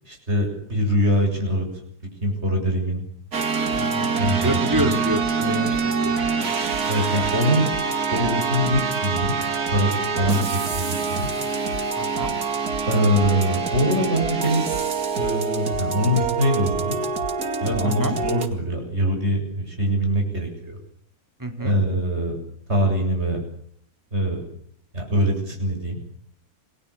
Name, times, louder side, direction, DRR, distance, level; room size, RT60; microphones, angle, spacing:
voice 1, 0.0-1.7 2.2-3.0 4.2-4.9 6.8-7.7 8.1-9.3 9.7-11.3 12.9-14.7 15.2-17.0 17.6-20.8 21.6-22.4 22.7-23.4 24.1-24.5 24.9-26.0, equal, 45° right, 2 dB, 7.8 m, -23 dB
sound 1, 3.3-18.5, right 5 dB, 80° right, 2.8 m, -25 dB
voice 2, 3.8-4.2 4.4-6.5 11.9-12.3 17.8-18.2 21.4-21.7, right 1 dB, 10° right, 5 dB, 3.8 m, -28 dB
28.5 x 21.0 x 8.6 m, 0.64 s
omnidirectional pair, 1.6 m